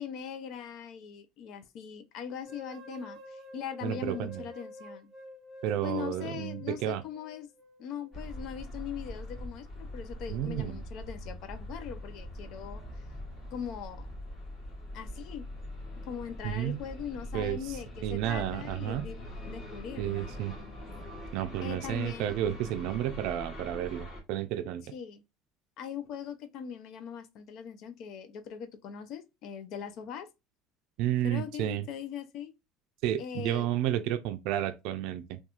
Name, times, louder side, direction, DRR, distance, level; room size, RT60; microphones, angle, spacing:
voice 1, 0.0-5.1 5.8-7.5 7.8-12.8 13.5-14.1 14.9-15.5 16.1-19.2 19.5-20.3 21.6-22.4 24.9-25.2 25.8-30.3 31.2-32.5 33.2-33.7, left 8 dB, 55° left, 0.4 m, -40 dB
sound 1, 2.4-8.4, left 1 dB, 30° right, 0.9 m, -49 dB
voice 2, 3.8-4.5 5.6-7.0 10.3-10.8 16.4-16.8 17.3-17.6 18.0-19.0 20.0-20.5 21.3-24.8 31.0-31.9 33.0-35.4, right 12 dB, 65° right, 0.4 m, -31 dB
sound 2, 8.1-24.2, left 1 dB, 30° left, 1.2 m, -43 dB
2.8 x 2.3 x 2.4 m
cardioid pair, 140°, 0 cm